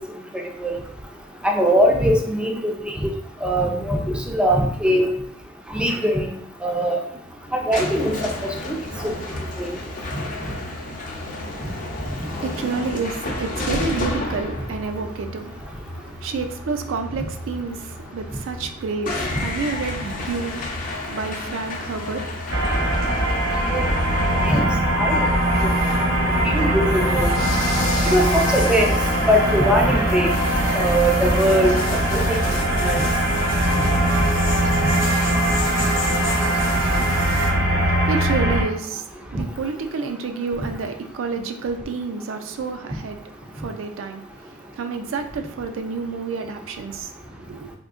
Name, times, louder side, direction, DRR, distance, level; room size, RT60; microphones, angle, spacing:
voice 1, 0.3-0.8 1.4-3.1 3.4-5.1 5.7-6.3 6.6-7.0 7.5-8.2 8.4-9.1 9.6-9.7 19.4-19.5 23.7-23.8 24.4-24.7 25.0-25.3 25.6-25.7 26.4-27.3 28.1-29.0 29.3-30.3 30.7-32.4 32.8-33.0, equal, 5° right, 0.3 m, -21 dB
sound 1, 7.1-24.6, left 2 dB, 45° left, 0.6 m, -32 dB
voice 2, 12.2-23.2 37.9-47.7, right 4 dB, 85° right, 0.4 m, -30 dB
sound 2, 19.3-37.5, left 4 dB, 80° left, 0.7 m, -36 dB
sound 3, 22.5-38.6, right 1 dB, 70° right, 0.8 m, -21 dB
3.6 x 2.7 x 2.4 m
head